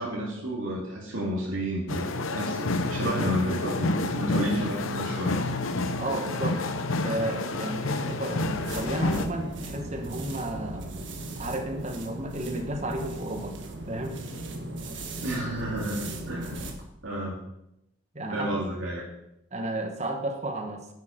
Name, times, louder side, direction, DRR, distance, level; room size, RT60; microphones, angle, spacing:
voice 1, 0.0-2.1 2.3-5.6 15.2-16.7 17.0-17.3 18.3-19.0, equal, 80° right, -4 dB, 2.6 m, -31 dB
sound 1, 1.9-9.3, left 2 dB, 80° left, 0.9 m, -29 dB
voice 2, 6.0-6.6 7.0-10.9 11.4-13.6 13.9-14.2 18.1-18.7 19.5-20.9, right 1 dB, 35° right, 4 dB, 1.4 m, -33 dB
sound 2, 8.4-16.8, right 2 dB, 65° right, 1.5 m, -38 dB
10.5 x 8.3 x 5.2 m, 0.84 s
head